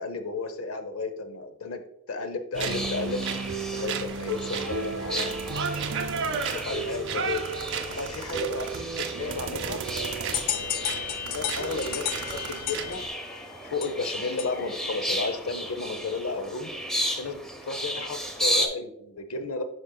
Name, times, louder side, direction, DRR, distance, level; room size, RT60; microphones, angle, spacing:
voice 1, 0.0-1.8 2.1-3.2 3.7-5.4 6.5-7.4 7.9-8.9 9.1-9.8 10.5-10.9 11.2-12.1 12.5-13.0 13.6-16.7 17.2-19.6, left 4 dB, 90° left, 9 dB, 0.8 m, -33 dB
sound 1, 2.5-13.1, right 5 dB, 60° right, 0.6 m, -33 dB
sound 2, 2.6-18.7, equal, 5° left, 0.6 m, -35 dB
sound 3, 10.3-14.8, left 11 dB, 45° left, 0.3 m, -33 dB
9.8 x 4.5 x 2.3 m, 0.75 s
head